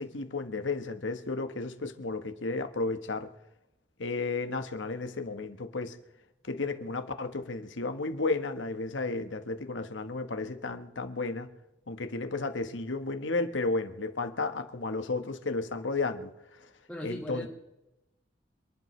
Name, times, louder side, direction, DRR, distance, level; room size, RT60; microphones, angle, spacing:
voice 1, 0.0-3.3 4.0-6.0 6.4-11.5 11.9-16.3 17.0-17.5, left 3 dB, 85° left, 8 dB, 1.3 m, -33 dB
voice 2, 16.9-17.5, equal, 5° left, -7 dB, 2.1 m, -37 dB
28.0 x 11.0 x 3.3 m, 0.92 s
head